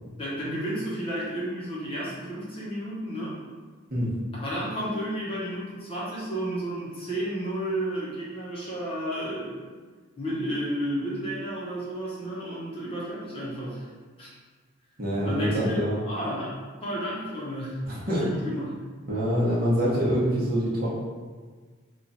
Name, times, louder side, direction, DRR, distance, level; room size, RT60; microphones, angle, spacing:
voice 1, 0.2-3.4 4.3-9.7 10.2-13.9 14.2-14.3 15.2-15.8 16.0-16.5 16.8-17.8 18.2-18.7, equal, 30° left, -7 dB, 0.8 m, -32 dB
voice 2, 15.0-16.0 17.8-18.2 19.1-20.9, equal, 45° right, -7 dB, 0.9 m, -25 dB
3.0 x 2.4 x 4.0 m, 1.5 s
head